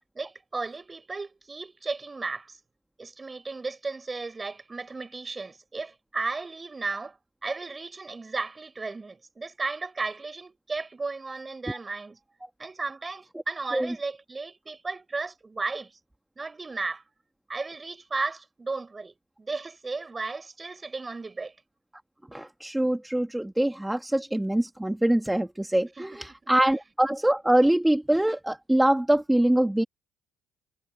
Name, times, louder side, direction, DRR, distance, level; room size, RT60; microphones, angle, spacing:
voice 1, 0.1-2.6 3.0-12.2 12.6-16.0 16.4-17.0 17.5-21.5 25.9-26.5, right 3 dB, 25° right, 7.6 m, -35 dB
voice 2, 22.3-29.8, right 1 dB, 5° right, 2.1 m, -24 dB
supercardioid pair, 70°, 0 cm